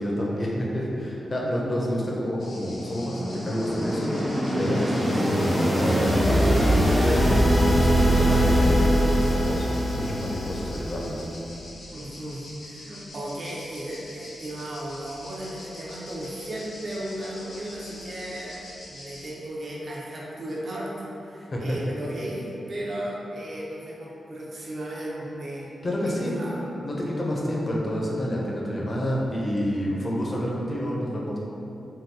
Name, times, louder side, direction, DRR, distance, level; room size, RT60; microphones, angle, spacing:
voice 1, 0.0-9.6 9.9-11.2 21.5-21.6 25.8-26.4 26.8-31.4, equal, 35° left, -3 dB, 0.5 m, -29 dB
sound 1, 2.4-19.3, left 1 dB, 85° left, 0.6 m, -45 dB
sound 2, 2.5-11.3, equal, 10° right, 0.5 m, -22 dB
voice 2, 11.9-25.7 26.0-26.7, right 1 dB, 50° right, -4 dB, 0.6 m, -35 dB
3.7 x 2.2 x 2.7 m, 2.8 s
wide cardioid pair, 105°, 0 cm